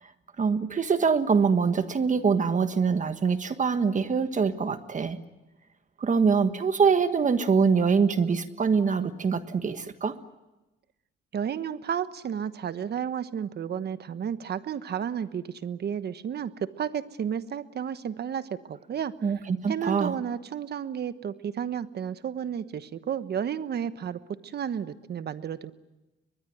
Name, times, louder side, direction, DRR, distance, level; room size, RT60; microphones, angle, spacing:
voice 1, 0.4-5.2 6.0-10.1 19.2-20.1, right 5 dB, 40° right, 9 dB, 1.5 m, -24 dB
voice 2, 11.3-19.1 19.7-25.7, right 8 dB, 55° right, 12 dB, 1.3 m, -32 dB
23.5 x 20.5 x 9.4 m, 1.0 s
cardioid pair, 90°, 20 cm